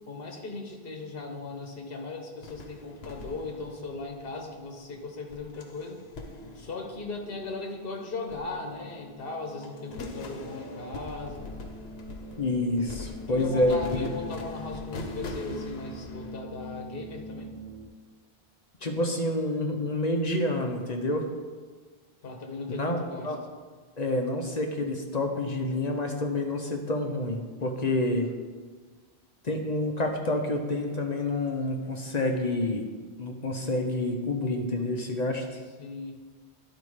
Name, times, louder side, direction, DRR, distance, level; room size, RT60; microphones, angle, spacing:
voice 1, 0.1-6.1 6.5-11.5 13.3-17.6 22.2-23.3 35.8-36.2, left 3 dB, 65° left, 3 dB, 1.3 m, -38 dB
sound 1, 2.4-4.7 5.3-7.8 8.3-9.1 9.4-16.4, left 3 dB, 85° left, 1.0 m, -42 dB
sound 2, 6.0-17.9, equal, 65° right, 1.8 m, -45 dB
voice 2, 12.4-14.1 18.8-21.2 22.7-23.0 23.2-23.4 24.0-28.3 29.4-32.8 33.2-35.4, left 2 dB, 45° left, 3 dB, 0.8 m, -28 dB
11.5 x 4.1 x 4.9 m, 1.5 s
omnidirectional pair, 1.0 m